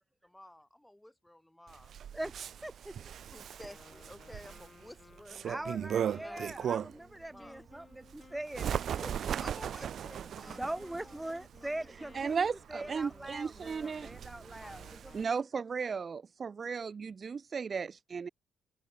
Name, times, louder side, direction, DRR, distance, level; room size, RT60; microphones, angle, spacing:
voice 1, 0.2-2.0 2.9-5.7 6.2-7.6 9.4-11.2 11.6-11.9, left 1 dB, 5° left, 7.5 m, -53 dB
Bird, 1.7-7.1 7.6-15.2, right 9 dB, 60° right, 0.4 m, -38 dB
voice 2, 2.1-2.9 5.4-9.3 10.4-15.4, right 1 dB, 10° right, 2.7 m, -42 dB
Wind instrument woodwind instrument, 3.6-15.3, left 4 dB, 30° left, 5.7 m, -59 dB
voice 3, 12.1-14.1 15.1-18.3, right 5 dB, 40° right, 1.3 m, -35 dB
cardioid pair, 90°, 0 cm